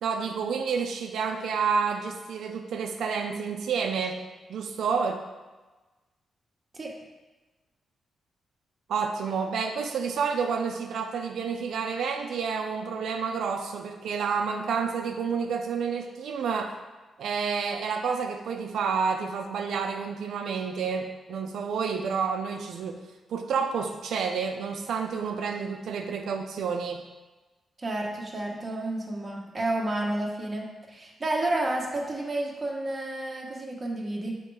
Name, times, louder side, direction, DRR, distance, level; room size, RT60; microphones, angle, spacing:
voice 1, 0.0-4.2 4.5-5.2 8.9-16.8 17.2-23.0 23.3-27.1, right 6 dB, 85° right, 4 dB, 0.4 m, -29 dB
voice 2, 27.8-34.4, right 1 dB, 20° right, -2 dB, 1.1 m, -31 dB
7.5 x 3.1 x 4.7 m, 1.2 s
wide cardioid pair, 135°, 0 cm